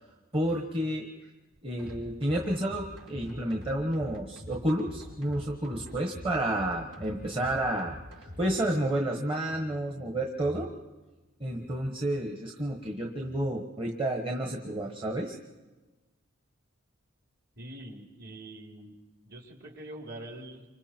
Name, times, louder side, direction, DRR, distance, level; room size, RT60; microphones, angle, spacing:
voice 1, 0.3-1.1 1.6-8.0 8.4-10.7 11.4-15.4, right 1 dB, 25° right, 1 dB, 1.4 m, -30 dB
sound 1, 1.8-8.6, left 1 dB, 85° right, 7.2 m, -45 dB
voice 2, 17.6-18.9 19.2-20.6, right 1 dB, 50° right, 1 dB, 3.3 m, -44 dB
29.0 x 26.0 x 4.5 m, 1.2 s
head